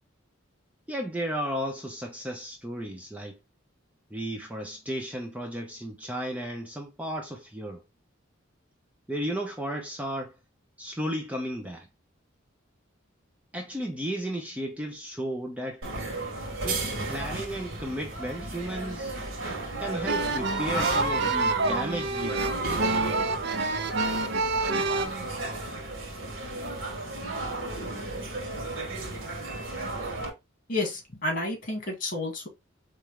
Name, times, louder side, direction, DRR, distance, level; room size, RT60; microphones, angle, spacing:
voice 1, 0.9-3.4 4.1-7.8 9.1-10.4 10.8-11.9 13.5-15.8 16.6-19.2 19.8-22.8, right 1 dB, 5° right, 0.6 m, -34 dB
sound 1, 15.8-30.3, right 2 dB, 80° right, 1.7 m, -34 dB
sound 2, 20.1-25.1, right 3 dB, 55° right, 0.6 m, -27 dB
voice 2, 30.7-32.5, left 2 dB, 45° left, 2.0 m, -30 dB
4.4 x 3.2 x 3.5 m
head